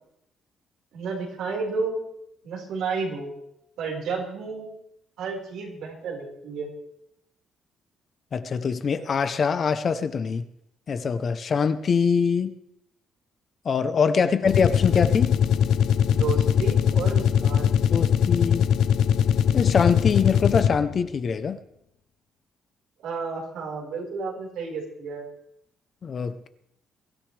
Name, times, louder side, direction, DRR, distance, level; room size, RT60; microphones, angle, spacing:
voice 1, 0.9-2.0 2.4-3.3 3.8-4.7 5.2-6.7 14.2-14.4 16.1-17.7 23.0-25.2, right 4 dB, 85° right, 4.8 m, -31 dB
voice 2, 8.3-10.5 10.9-12.5 13.6-15.4 17.9-18.7 19.5-21.6 26.0-26.5, left 6 dB, 35° left, 0.8 m, -24 dB
sound 1, 14.4-21.0, left 8 dB, 90° left, 0.7 m, -21 dB
23.0 x 13.5 x 3.4 m
cardioid pair, 160°, 0 cm